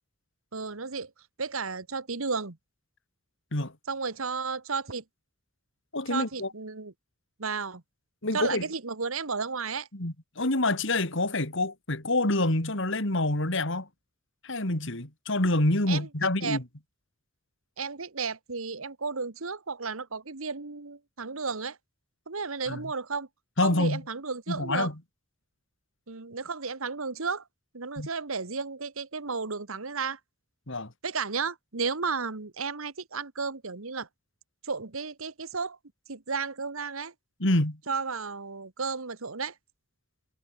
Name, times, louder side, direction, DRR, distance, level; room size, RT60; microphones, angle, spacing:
voice 1, 0.5-1.1 1.4-2.6 3.9-5.0 6.1-6.9 7.4-7.8 8.3-9.9 15.9-16.1 16.4-16.6 17.8-21.8 22.3-23.3 23.6-24.9 26.1-27.4 27.7-30.2 31.0-34.1 34.6-35.8 36.1-37.1 37.9-39.5, right 5 dB, 75° right, 1.5 m, -33 dB
voice 2, 5.9-6.5 8.2-8.6 9.9-13.9 14.4-16.6 22.7-22.8 23.6-24.0 24.5-24.9 28.0-28.1 30.7-30.9 37.4-37.8, left 2 dB, 60° left, 3.3 m, -27 dB
head